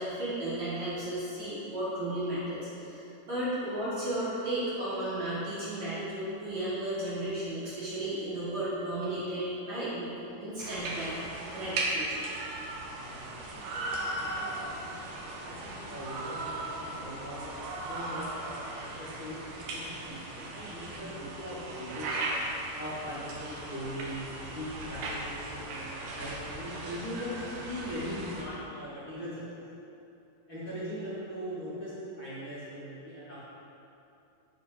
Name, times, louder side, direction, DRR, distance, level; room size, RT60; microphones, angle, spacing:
voice 1, 0.0-10.1 10.4-11.2 11.5-12.3, right 1 dB, 45° right, -10 dB, 3.6 m, -34 dB
sound 1, 10.6-28.4, right 2 dB, 70° right, 3.1 m, -37 dB
voice 2, 13.0-13.6 13.9-17.5 17.9-18.3 18.8-22.2 22.7-29.4 30.5-33.4, equal, 35° left, -12 dB, 2.8 m, -40 dB
16.5 x 8.4 x 3.9 m, 2.8 s
omnidirectional pair, 5.0 m